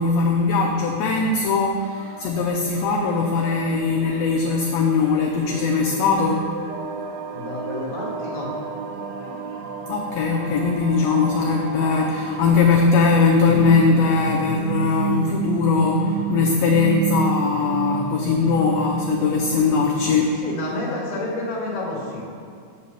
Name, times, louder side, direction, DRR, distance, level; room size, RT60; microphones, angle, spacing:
voice 1, 0.0-6.5 9.2-9.4 9.9-20.4, left 4 dB, 80° left, 1 dB, 1.5 m, -20 dB
sound 1, 1.8-20.4, right 6 dB, 85° right, 2.0 m, -32 dB
voice 2, 7.3-8.5 20.4-22.3, left 2 dB, 35° left, -4 dB, 1.6 m, -29 dB
7.3 x 4.2 x 6.5 m, 2.2 s
omnidirectional pair, 3.4 m